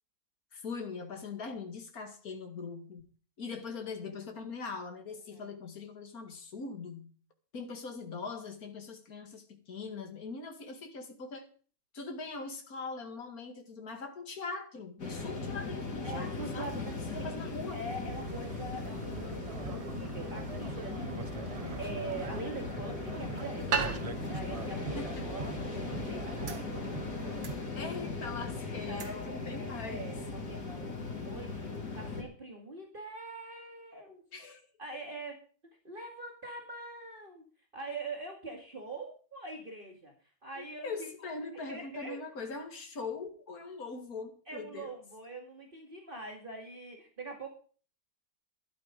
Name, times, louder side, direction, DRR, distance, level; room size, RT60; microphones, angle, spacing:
voice 1, 0.5-3.1 3.4-7.1 7.5-11.5 11.9-17.8 25.0-25.3 27.1-27.3 27.8-30.1 34.3-34.6 40.6-44.9, left 4 dB, 65° left, 2.6 m, -41 dB
sound 1, 15.0-32.2, left 3 dB, 90° left, 3.4 m, -38 dB
voice 2, 16.0-21.5 21.8-26.6 27.8-27.9 28.9-31.7 31.9-34.2 34.8-35.3 35.8-37.4 37.7-40.1 40.4-41.3 41.7-42.2 44.5-47.5, right 2 dB, 35° right, 2.4 m, -43 dB
sound 2, 17.9-27.6, right 5 dB, 55° right, 0.4 m, -43 dB
sound 3, 21.5-31.6, right 5 dB, 85° right, 2.0 m, -42 dB
12.5 x 12.0 x 5.2 m
omnidirectional pair, 1.7 m